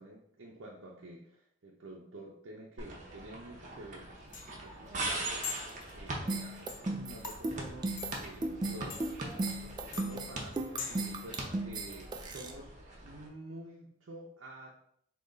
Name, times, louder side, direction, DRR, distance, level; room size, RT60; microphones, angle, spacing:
voice 1, 0.0-4.1 4.5-5.5 5.9-6.5 6.7-9.2 9.6-12.7 13.0-14.8, right 1 dB, 80° right, -3 dB, 0.7 m, -49 dB
sound 1, 2.8-13.3, right 2 dB, 40° right, 0.8 m, -42 dB
sound 2, 3.7-11.1, left 5 dB, 40° left, 0.5 m, -46 dB
sound 3, 6.3-12.5, right 2 dB, 20° right, 0.3 m, -36 dB
3.8 x 2.8 x 4.0 m, 0.67 s
head